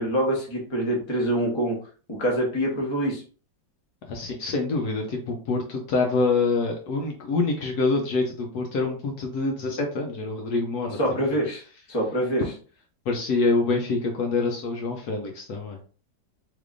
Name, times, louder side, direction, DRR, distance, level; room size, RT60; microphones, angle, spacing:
voice 1, 0.0-1.8 2.2-3.2 11.0-11.6 11.9-12.4, right 1 dB, 20° left, -2 dB, 0.9 m, -25 dB
voice 2, 4.1-11.0 13.1-15.8, left 3 dB, 65° left, 2 dB, 1.2 m, -26 dB
3.3 x 3.3 x 2.5 m, 0.39 s
omnidirectional pair, 1.9 m